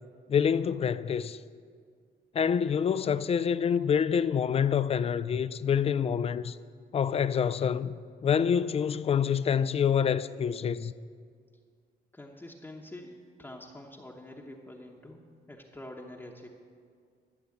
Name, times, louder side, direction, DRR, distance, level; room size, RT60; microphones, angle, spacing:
voice 1, 0.3-1.4 2.3-6.6 6.9-7.9 8.2-10.9, left 7 dB, 35° left, 0.4 m, -26 dB
voice 2, 12.1-16.5, left 1 dB, 10° left, 1.0 m, -46 dB
13.0 x 6.9 x 8.5 m
cardioid pair, 125°, 18 cm